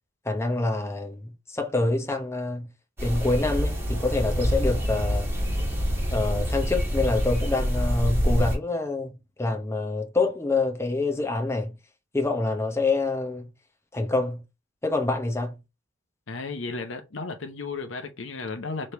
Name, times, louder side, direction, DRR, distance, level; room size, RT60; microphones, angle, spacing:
voice 1, 0.2-2.7 3.0-5.3 6.1-9.1 9.4-11.8 12.1-13.5 13.9-14.4 14.8-15.6, left 2 dB, 15° left, 0.8 m, -26 dB
sound 1, 3.0-8.6, equal, 15° right, 1.7 m, -26 dB
voice 2, 16.3-18.9, left 3 dB, 65° left, 0.8 m, -34 dB
3.4 x 3.2 x 4.2 m
head